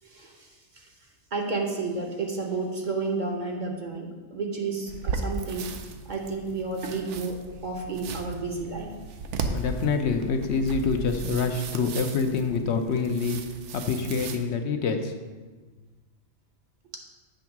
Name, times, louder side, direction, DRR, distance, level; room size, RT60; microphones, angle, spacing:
voice 1, 0.0-0.9 1.3-5.7 6.1-8.9, right 3 dB, 45° right, 1 dB, 0.9 m, -31 dB
sound 1, 4.9-14.4, right 4 dB, 80° right, 0.9 m, -36 dB
voice 2, 9.5-13.4 13.7-15.1, left 5 dB, 70° left, 6 dB, 0.8 m, -26 dB
7.9 x 3.5 x 5.8 m, 1.3 s
omnidirectional pair, 1.2 m